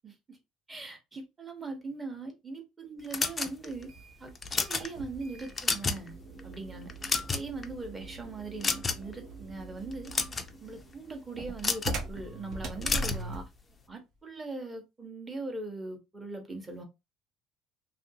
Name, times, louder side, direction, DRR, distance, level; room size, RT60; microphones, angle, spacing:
voice 1, 0.0-0.4 0.7-3.9 4.2-4.3 4.6-6.1 6.4-6.9 7.3-10.1 10.6-13.5 13.9-16.8, right 3 dB, 15° right, 0.9 m, -40 dB
sound 1, 3.1-3.8 4.3-4.9 5.4-6.1 6.4-6.5 6.9-7.6 8.6-9.1 9.9-10.5 11.6-12.0 12.8-13.2, left 4 dB, 20° left, 0.4 m, -30 dB
sound 2, 3.7-13.6, right 2 dB, 50° right, 0.7 m, -42 dB
3.0 x 2.6 x 2.7 m
cardioid pair, 150°, 0 cm